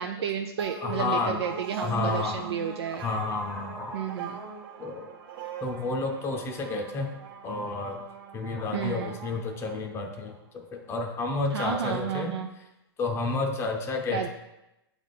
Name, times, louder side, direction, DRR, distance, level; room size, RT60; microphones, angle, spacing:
voice 1, 0.0-3.0 3.9-4.4 8.7-9.2 11.5-12.5 14.1-14.3, right 8 dB, 80° right, 3 dB, 0.5 m, -31 dB
sound 1, 0.6-10.4, right 5 dB, 60° right, 1.0 m, -41 dB
voice 2, 0.8-1.4 1.8-2.5 3.0-4.0 4.8-5.1 5.6-7.1 7.4-8.0 8.3-12.3 13.0-14.3, left 3 dB, 20° left, 2 dB, 0.7 m, -30 dB
8.1 x 3.5 x 4.1 m, 0.92 s
hypercardioid pair, 135°, 14 cm